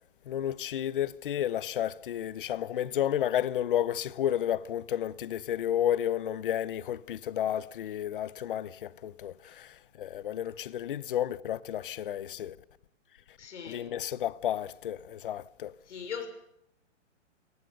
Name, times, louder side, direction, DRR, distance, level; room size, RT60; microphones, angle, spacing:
voice 1, 0.3-9.7 10.0-12.5 13.7-15.7, left 11 dB, 45° left, 0.9 m, -31 dB
voice 2, 13.4-13.9 15.9-16.3, left 7 dB, 65° left, 6.0 m, -40 dB
28.5 x 19.5 x 6.7 m
hypercardioid pair, 165°, 37 cm